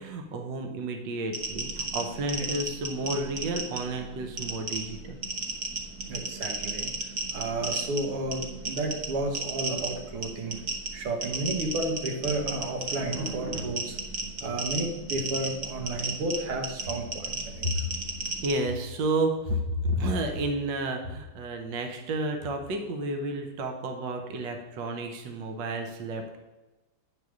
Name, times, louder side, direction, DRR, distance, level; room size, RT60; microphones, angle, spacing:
voice 1, 0.0-5.2 17.6-17.8 18.4-26.4, right 1 dB, 65° right, 4 dB, 1.5 m, -31 dB
sound 1, 1.3-18.5, right 3 dB, 45° right, 1.2 m, -34 dB
voice 2, 6.1-6.9 7.3-10.6 10.9-14.0 14.4-17.7, right 2 dB, 90° right, 2 dB, 2.1 m, -32 dB
9.5 x 3.6 x 6.4 m, 1.1 s
omnidirectional pair, 2.4 m